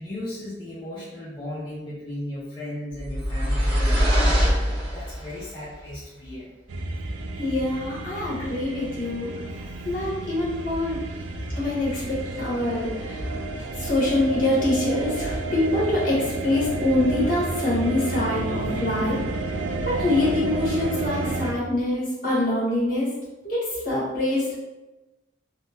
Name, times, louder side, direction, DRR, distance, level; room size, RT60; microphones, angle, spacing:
voice 1, 0.0-4.1 4.6-6.5 9.5-9.6 10.8-10.9 11.1-11.2, left 1 dB, 25° left, -9 dB, 0.5 m, -36 dB
sound 1, 3.0-5.4, equal, 30° right, 1.0 m, -22 dB
sound 2, 6.7-21.5, right 2 dB, 70° right, 0.3 m, -31 dB
voice 2, 7.4-9.3 9.8-11.0 11.6-13.4 13.7-19.2 19.8-23.1 23.4-24.6, left 1 dB, 50° left, -7 dB, 1.3 m, -25 dB
3.5 x 2.1 x 2.7 m, 1.1 s
head